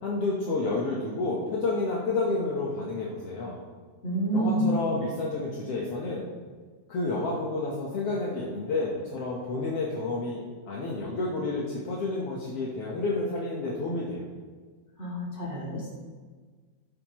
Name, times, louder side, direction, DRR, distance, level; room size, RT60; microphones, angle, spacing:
voice 1, 0.0-3.6 4.3-6.3 6.9-14.2, left 3 dB, 65° left, -4 dB, 1.5 m, -30 dB
voice 2, 4.0-4.7 15.0-15.9, right 1 dB, 20° left, -7 dB, 2.6 m, -28 dB
16.5 x 8.5 x 3.1 m, 1.5 s
omnidirectional pair, 4.5 m